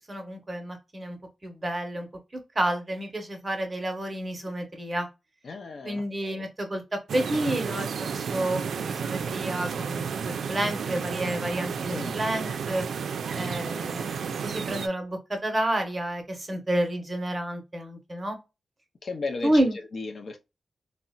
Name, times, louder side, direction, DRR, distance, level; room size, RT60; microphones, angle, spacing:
voice 1, 0.1-1.2 1.4-2.1 2.5-5.1 5.8-12.9 13.3-18.4 19.4-19.8, right 1 dB, 20° right, 0.8 m, -30 dB
voice 2, 5.4-6.5 11.9-12.2 19.0-19.6 19.9-20.4, left 3 dB, 55° left, 0.5 m, -35 dB
sound 1, 7.1-14.9, right 6 dB, 85° right, 0.3 m, -32 dB
3.9 x 2.0 x 2.2 m
wide cardioid pair, 145°, 0 cm